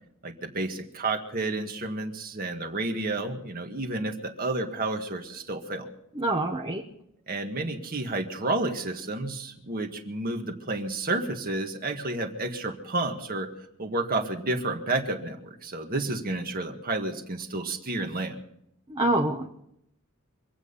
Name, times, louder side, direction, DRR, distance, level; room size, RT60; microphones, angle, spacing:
voice 1, 0.2-5.9 7.3-13.5 13.8-18.4, right 2 dB, 45° right, 4 dB, 1.8 m, -31 dB
voice 2, 6.1-6.8 18.9-19.5, right 1 dB, 25° right, 1 dB, 1.0 m, -26 dB
25.5 x 8.6 x 5.6 m, 0.76 s
head